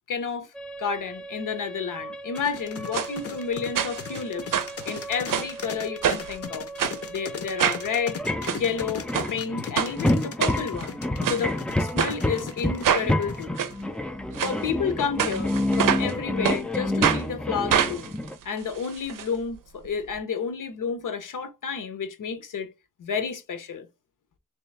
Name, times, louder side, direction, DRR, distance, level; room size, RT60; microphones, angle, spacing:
voice 1, 0.1-0.5 0.8-4.6 4.8-6.7 7.1-8.2 8.5-13.6 14.4-18.1 18.4-22.7 23.0-23.9, left 6 dB, 75° left, 0.9 m, -31 dB
sound 1, 0.6-18.4, left 1 dB, 5° left, 0.3 m, -30 dB
sound 2, 2.4-13.8, left 6 dB, 45° left, 0.7 m, -37 dB
sound 3, 2.9-3.1 3.8-4.2 4.5-5.6 6.0-6.4 6.8-7.0 7.6-7.9 8.3-8.6 9.1-9.3 9.8-9.9 10.4-10.9 11.2-11.4 12.0-12.1 12.8-13.1 13.6-13.7 14.3-14.5 15.2-16.1 16.4-16.6 17.0-17.2 17.7-19.2 19.5-19.6 19.9-20.0, right 9 dB, 80° right, 0.5 m, -25 dB
3.2 x 3.0 x 3.3 m
wide cardioid pair, 125°, 32 cm